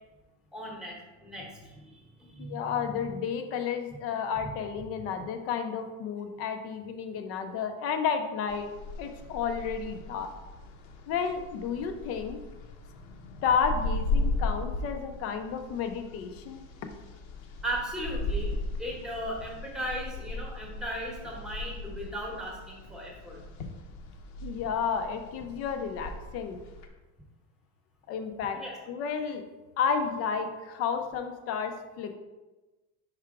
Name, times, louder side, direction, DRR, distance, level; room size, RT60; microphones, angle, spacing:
voice 1, 0.5-3.2 4.4-4.5 17.6-23.4 28.6-28.8, equal, ahead, -2 dB, 1.0 m, -37 dB
voice 2, 2.5-8.7 9.0-10.3 11.1-12.4 13.4-16.6 24.4-26.6 28.1-29.4 29.8-32.1, left 6 dB, 40° left, 7 dB, 0.5 m, -31 dB
sound 1, 8.5-26.9, left 2 dB, 80° left, 0.9 m, -37 dB
5.6 x 4.6 x 3.6 m, 1.1 s
cardioid pair, 170°, 37 cm